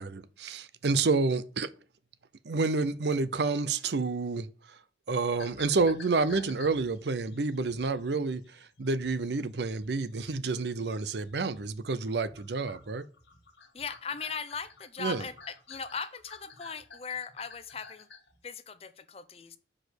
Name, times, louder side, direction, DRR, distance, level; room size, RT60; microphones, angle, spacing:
voice 1, 0.0-1.7 2.4-4.8 5.1-13.0 15.0-15.3, right 3 dB, 75° right, 0.6 m, -29 dB
sound 1, 5.3-11.8 12.0-18.4, left 3 dB, 80° left, 1.6 m, -52 dB
voice 2, 13.7-18.1 18.4-19.6, left 6 dB, 35° left, 0.6 m, -39 dB
6.3 x 5.0 x 6.4 m
head